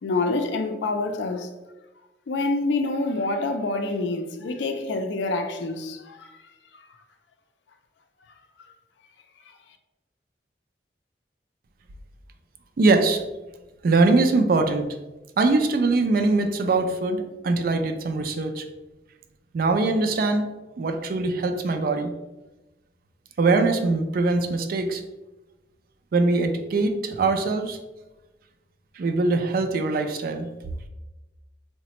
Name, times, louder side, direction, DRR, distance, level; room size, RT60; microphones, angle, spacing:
voice 1, 0.0-1.5 2.3-6.3 6.7-6.8, left 3 dB, 80° left, 0.4 m, -27 dB
voice 2, 12.8-13.2 13.8-14.9 15.4-18.6 19.5-20.5 20.8-22.1 23.4-25.0 26.1-27.8 29.0-30.5, right 3 dB, 55° right, 0.3 m, -22 dB
4.0 x 2.1 x 2.9 m
head